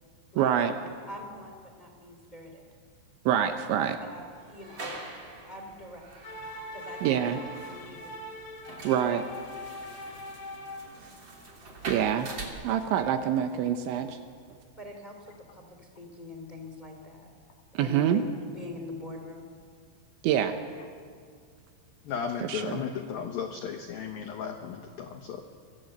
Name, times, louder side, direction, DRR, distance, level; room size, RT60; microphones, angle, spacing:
voice 1, 0.4-0.7 3.3-4.0 7.0-7.4 8.8-9.3 11.9-12.3 12.6-14.2 17.7-18.2 20.2-20.5 22.5-22.6, right 9 dB, 75° right, 7 dB, 3.0 m, -25 dB
voice 2, 1.1-2.6 4.1-6.1 6.7-7.3 7.6-8.2 14.8-15.2 15.5-17.3 17.7-18.2 18.5-19.5, left 1 dB, 15° left, 3 dB, 1.5 m, -44 dB
sound 1, 4.3-12.5, right 3 dB, 30° right, 2.6 m, -44 dB
sound 2, 6.2-11.0, left 1 dB, 45° left, 2.6 m, -41 dB
voice 3, 22.0-25.4, left 7 dB, 85° left, 5 dB, 2.1 m, -35 dB
25.5 x 20.5 x 7.9 m, 2.1 s
omnidirectional pair, 6.0 m